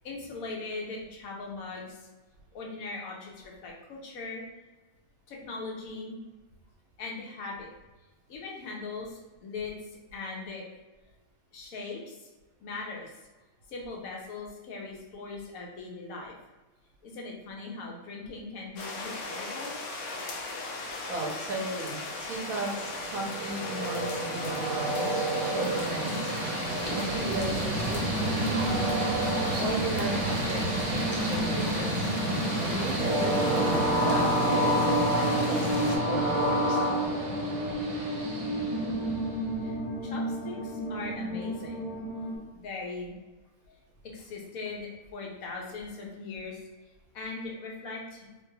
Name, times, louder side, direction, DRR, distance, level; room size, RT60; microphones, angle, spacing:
voice 1, 0.0-2.1 2.5-4.4 5.3-6.2 7.0-7.7 8.3-10.6 11.5-12.3 12.6-13.1 13.7-16.3 17.0-19.8 39.6-41.9 42.6-43.1 43.7-43.8 44.0-46.6 47.1-48.3, left 3 dB, 90° left, -1 dB, 1.2 m, -40 dB
sound 1, 18.8-36.0, left 2 dB, 70° left, 0.9 m, -37 dB
voice 2, 21.1-26.3 26.9-28.3 29.6-36.8, right 2 dB, 85° right, -1 dB, 1.2 m, -36 dB
Train, 22.7-39.4, right 1 dB, 65° right, 1.0 m, -30 dB
sound 2, 26.7-42.4, right 1 dB, 15° right, 0.6 m, -32 dB
3.2 x 3.1 x 2.2 m, 1.2 s
omnidirectional pair, 1.4 m